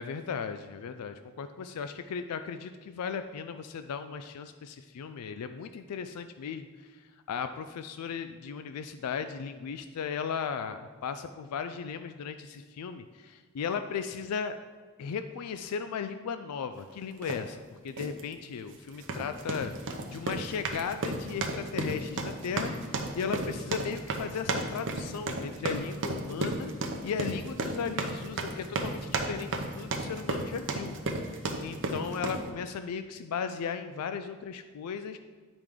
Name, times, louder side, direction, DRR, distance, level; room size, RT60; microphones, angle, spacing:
voice 1, 0.0-14.6 15.0-31.0 31.2-35.2, left 6 dB, 85° left, 9 dB, 0.4 m, -36 dB
sound 1, 17.2-17.4 18.0-18.2 18.9-32.5, right 2 dB, 55° right, 0.7 m, -33 dB
9.1 x 4.9 x 3.6 m, 1.4 s
head